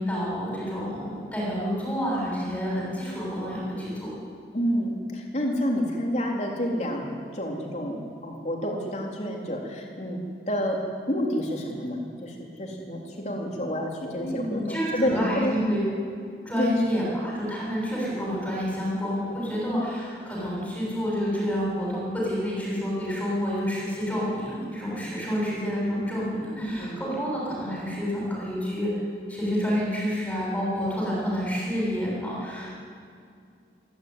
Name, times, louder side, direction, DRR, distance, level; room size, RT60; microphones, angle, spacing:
voice 1, 0.0-4.1 14.1-15.8 16.5-28.9 29.3-32.7, equal, 10° left, -5 dB, 7.0 m, -29 dB
voice 2, 4.5-10.2 10.5-10.8 11.1-15.5 16.6-16.8 19.6-19.8 26.6-27.0, equal, 40° left, -1 dB, 3.7 m, -29 dB
27.5 x 11.5 x 9.6 m, 2.4 s
head